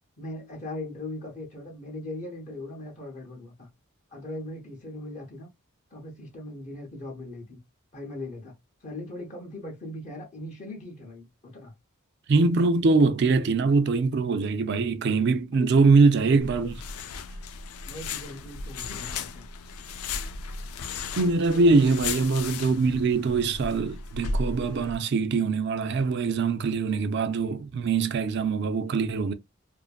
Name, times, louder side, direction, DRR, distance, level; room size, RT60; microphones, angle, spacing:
voice 1, 0.2-3.7 4.1-5.5 5.9-7.6 7.9-8.5 8.8-11.7 15.5-15.7 17.9-19.5 21.5-21.9, left 1 dB, 35° left, 0.7 m, -39 dB
voice 2, 12.3-16.8 21.2-29.3, right 4 dB, 50° right, 0.4 m, -23 dB
sound 1, 16.4-24.9, left 4 dB, 90° left, 0.4 m, -35 dB
2.6 x 2.5 x 2.3 m
head